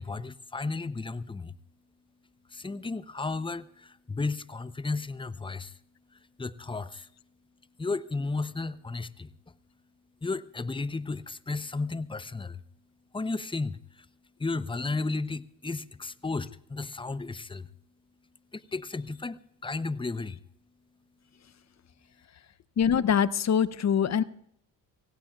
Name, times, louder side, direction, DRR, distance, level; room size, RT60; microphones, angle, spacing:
voice 1, 0.0-1.5 2.5-5.8 6.1-7.1 7.8-9.3 10.2-12.6 13.1-14.1 14.4-17.7 18.5-20.4, left 3 dB, 15° left, 0.7 m, -34 dB
voice 2, 22.8-24.2, left 8 dB, 40° left, 0.8 m, -24 dB
25.0 x 17.0 x 2.4 m
supercardioid pair, 60°, 40 cm